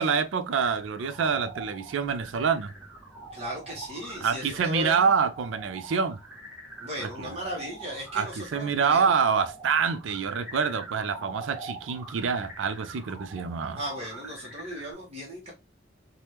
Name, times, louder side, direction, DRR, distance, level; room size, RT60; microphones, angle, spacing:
voice 1, 0.0-2.7 4.2-6.2 7.0-7.4 8.1-13.8, right 6 dB, 85° right, 0.4 m, -26 dB
sound 1, 0.6-14.9, right 3 dB, 10° right, 1.3 m, -44 dB
voice 2, 3.3-5.1 6.8-9.1 13.8-15.5, equal, 35° right, 0.9 m, -37 dB
3.3 x 2.2 x 2.8 m
head